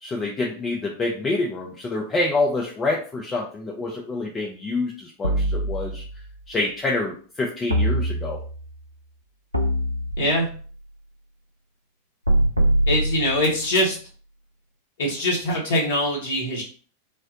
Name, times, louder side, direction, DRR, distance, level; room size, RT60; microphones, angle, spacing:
voice 1, 0.0-6.0 6.5-8.4, left 2 dB, 20° left, -2 dB, 0.5 m, -27 dB
sound 1, 5.2-6.3 7.7-8.7 9.5-10.6 12.2-13.7, right 1 dB, 85° right, 0.4 m, -23 dB
voice 2, 10.2-10.5 12.9-14.0 15.0-16.6, left 1 dB, 60° left, -3 dB, 1.2 m, -23 dB
3.6 x 2.1 x 2.7 m, 0.42 s
figure-of-eight pair, 90°, 0 cm